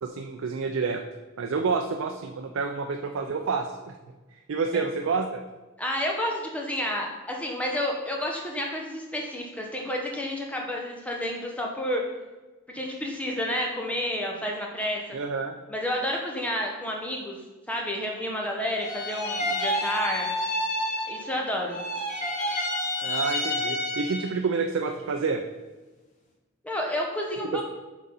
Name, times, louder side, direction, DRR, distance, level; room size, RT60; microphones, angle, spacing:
voice 1, 0.0-1.0 1.4-3.9 4.3-5.4 15.1-15.6 23.0-25.4 27.5-27.6, right 4 dB, 70° right, 4 dB, 0.4 m, -28 dB
voice 2, 5.8-12.0 12.7-15.0 15.7-17.4 17.7-20.3 21.1-21.8 26.6-27.6, left 1 dB, 5° left, -1 dB, 0.8 m, -30 dB
sound 1, 18.8-21.4 21.7-24.4, left 1 dB, 35° left, 1.0 m, -29 dB
7.5 x 4.1 x 3.9 m, 1.2 s
head